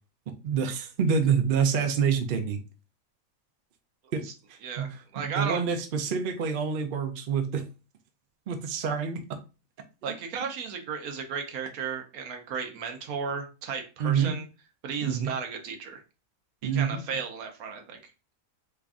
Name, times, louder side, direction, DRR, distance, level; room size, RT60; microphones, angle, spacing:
voice 1, 0.4-2.6 4.1-4.2 4.5-4.9 5.2-7.6 8.5-9.2 14.0-14.3 15.0-15.3 16.6-17.0, right 6 dB, 55° right, 6 dB, 0.6 m, -27 dB
voice 2, 4.6-5.6 10.0-14.5 14.8-16.0 16.6-18.0, right 6 dB, 85° right, 4 dB, 1.2 m, -34 dB
3.5 x 3.3 x 2.5 m, 0.31 s
omnidirectional pair, 1.5 m